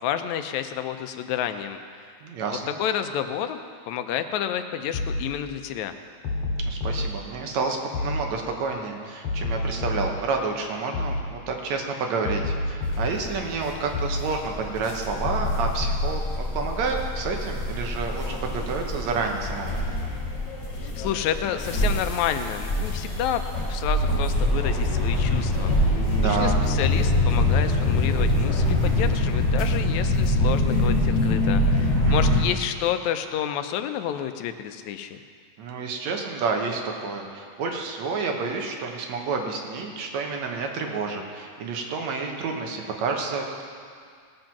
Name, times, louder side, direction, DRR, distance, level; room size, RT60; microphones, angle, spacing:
voice 1, 0.0-1.8 2.7-3.6 3.9-5.9 20.8-23.4 23.7-35.2, left 10 dB, 80° left, 9 dB, 1.9 m, -30 dB
voice 2, 2.2-2.7 6.7-19.8 26.1-26.6 32.0-32.4 35.6-43.6, right 4 dB, 75° right, 2 dB, 2.4 m, -29 dB
sound 1, 4.9-5.3 6.2-7.1 7.9-8.3 9.2-10.2 10.9-11.3 12.2-13.2 13.9-14.3 15.2-16.2, left 2 dB, 60° left, 3.0 m, -28 dB
sound 2, 12.8-32.4, left 1 dB, 35° left, 4.5 m, -24 dB
sound 3, 15.1-26.2, left 2 dB, 5° left, 2.2 m, -35 dB
18.5 x 7.9 x 5.9 m, 2.1 s
omnidirectional pair, 3.3 m